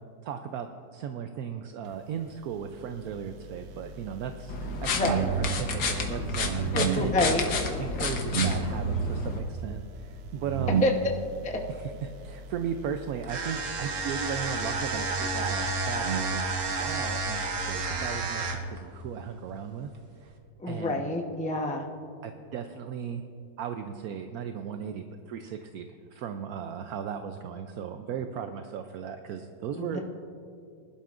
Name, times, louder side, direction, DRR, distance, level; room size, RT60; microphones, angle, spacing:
voice 1, 0.2-7.4 7.8-10.9 12.0-16.4 16.8-19.9 20.2-20.3 20.7-21.1 22.2-23.2 23.6-30.0, right 7 dB, 70° right, 7 dB, 0.9 m, -36 dB
sound 1, 2.7-18.1, right 6 dB, 85° right, 0.6 m, -35 dB
sound 2, 4.5-9.4, left 3 dB, 70° left, 1.7 m, -30 dB
voice 2, 6.7-7.5 10.8-10.9 11.4-11.6 20.6-21.9 29.7-30.0, left 2 dB, 10° left, 1 dB, 0.4 m, -28 dB
sound 3, 13.2-18.8, right 3 dB, 50° right, 1.3 m, -31 dB
20.5 x 11.5 x 2.5 m, 2.5 s
omnidirectional pair, 2.0 m